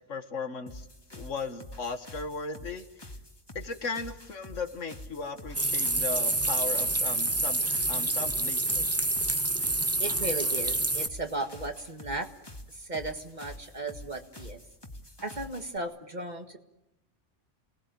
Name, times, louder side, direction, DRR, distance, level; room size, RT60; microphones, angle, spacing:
voice 1, 0.1-0.9 1.1-2.8 3.6-7.6 7.9-8.9, left 4 dB, 75° left, 8 dB, 2.0 m, -36 dB
sound 1, 0.7-15.8, left 1 dB, 20° left, 2.0 m, -47 dB
sound 2, 5.5-11.1, right 2 dB, 15° right, 0.8 m, -27 dB
voice 2, 10.0-12.3 12.7-14.6 15.2-16.6, right 2 dB, 35° right, 6 dB, 1.8 m, -36 dB
28.0 x 19.0 x 9.1 m, 0.94 s
omnidirectional pair, 1.3 m